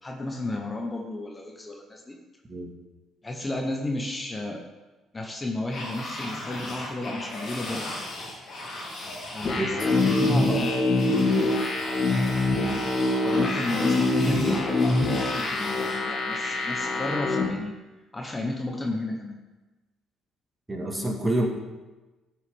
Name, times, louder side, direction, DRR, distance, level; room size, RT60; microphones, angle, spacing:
voice 1, 0.0-2.2 3.2-4.6 5.1-7.9 9.3-11.3 12.5-17.8 18.1-19.4, left 2 dB, 20° left, 1 dB, 1.1 m, -33 dB
sound 1, 5.7-16.0, left 1 dB, 60° left, 2.6 m, -37 dB
voice 2, 9.4-9.7 20.7-21.5, right 1 dB, 20° right, 1 dB, 1.8 m, -28 dB
sound 2, 9.5-17.4, left 2 dB, 40° left, 1.9 m, -24 dB
12.0 x 4.7 x 3.7 m, 1.1 s
hypercardioid pair, 50°, 0 cm